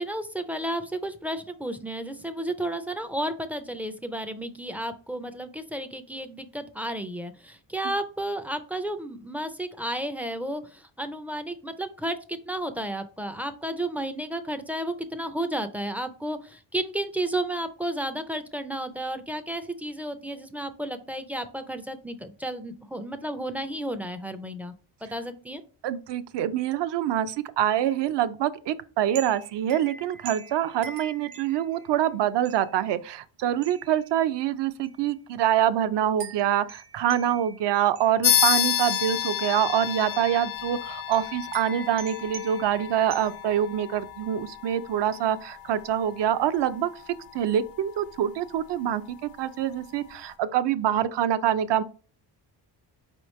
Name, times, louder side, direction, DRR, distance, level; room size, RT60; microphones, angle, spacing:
voice 1, 0.0-24.7 25.0-25.6, right 1 dB, 5° right, 0.3 m, -32 dB
voice 2, 25.8-46.9 47.3-51.8, right 10 dB, 60° right, 0.5 m, -25 dB
sound 1, 29.2-32.0 32.5-32.9 33.6-34.1 34.9-35.0 36.2-38.3 38.9-39.4 40.0-40.4 41.1-43.7, right 5 dB, 90° right, 0.9 m, -44 dB
sound 2, 38.2-48.2, left 10 dB, 70° left, 0.6 m, -30 dB
4.8 x 3.1 x 3.1 m
cardioid pair, 90°, 48 cm